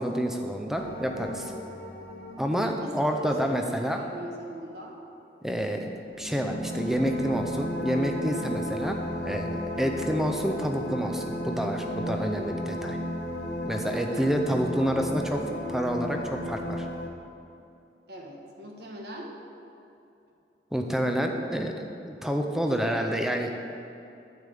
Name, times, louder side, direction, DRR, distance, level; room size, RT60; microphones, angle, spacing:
voice 1, 0.0-1.5 2.4-4.0 5.4-5.9 6.2-13.0 13.6-16.9 20.7-23.5, equal, ahead, 3 dB, 0.5 m, -28 dB
sound 1, 0.7-4.2 6.0-17.1, equal, 90° left, 1.0 m, -34 dB
voice 2, 3.2-5.0 14.1-14.3 18.1-19.4 22.8-23.3, right 1 dB, 65° right, -1 dB, 1.3 m, -42 dB
9.7 x 8.3 x 3.5 m, 2.7 s
head